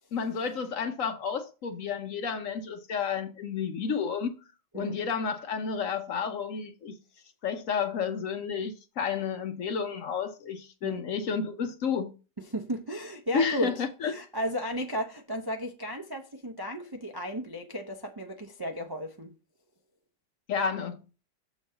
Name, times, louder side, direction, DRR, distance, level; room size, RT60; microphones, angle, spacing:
voice 1, 0.1-4.3 4.7-7.0 7.4-12.1 13.3-14.1 20.5-21.0, left 6 dB, 60° left, 0.9 m, -31 dB
voice 2, 12.4-19.3, equal, 30° right, 0.4 m, -34 dB
7.1 x 4.0 x 6.7 m
omnidirectional pair, 1.8 m